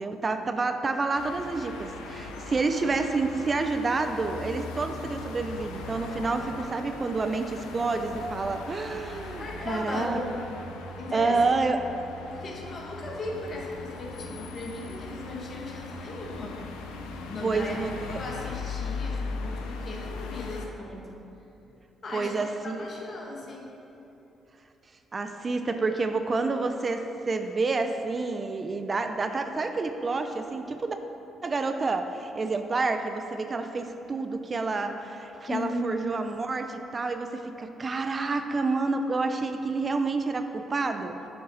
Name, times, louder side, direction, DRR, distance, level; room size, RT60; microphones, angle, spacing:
voice 1, 0.0-10.2 11.1-11.8 17.4-18.2 22.1-22.8 25.1-31.0 31.4-41.3, right 3 dB, 40° right, 7 dB, 0.4 m, -29 dB
sound 1, 1.1-20.7, left 4 dB, 80° left, 0.4 m, -39 dB
sound 2, 7.7-18.3, equal, 80° right, 1.0 m, -46 dB
voice 2, 9.4-10.2 11.0-11.4 12.3-16.6 17.2-17.8 18.2-21.1 22.0-23.7 35.5-35.8, left 2 dB, 50° left, -1 dB, 1.0 m, -37 dB
6.8 x 3.8 x 3.9 m, 3.0 s
hypercardioid pair, 45°, 0 cm